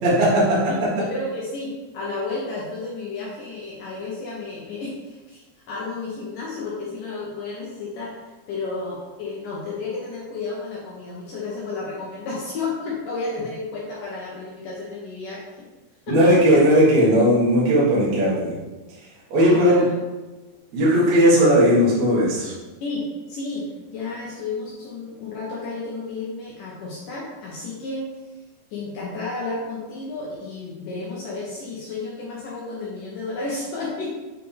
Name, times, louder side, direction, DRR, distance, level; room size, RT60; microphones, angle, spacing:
voice 1, 0.0-0.6 16.1-18.5 19.3-19.8 20.7-22.5, equal, 55° right, -8 dB, 2.3 m, -17 dB
voice 2, 1.0-1.7 1.9-5.4 5.7-8.2 8.5-15.7 16.1-16.6 19.4-19.9 22.8-28.0 28.7-34.1, left 3 dB, 70° left, -5 dB, 2.1 m, -32 dB
8.0 x 4.1 x 3.4 m, 1.2 s
omnidirectional pair, 4.8 m